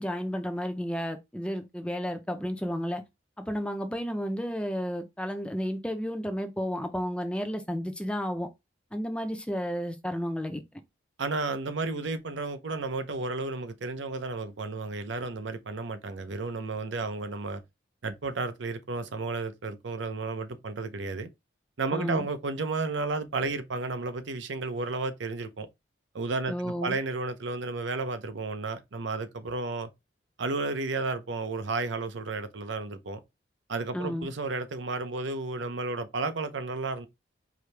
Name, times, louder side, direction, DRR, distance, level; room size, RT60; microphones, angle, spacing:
voice 1, 0.0-3.0 3.4-8.5 8.9-10.8 21.9-22.3 26.5-26.9 33.9-34.3, equal, 5° left, 0.5 m, -32 dB
voice 2, 11.2-17.6 18.0-21.3 21.8-25.7 26.1-29.9 30.4-33.2 33.7-37.1, right 3 dB, 75° right, 0.7 m, -32 dB
4.9 x 2.8 x 3.3 m
head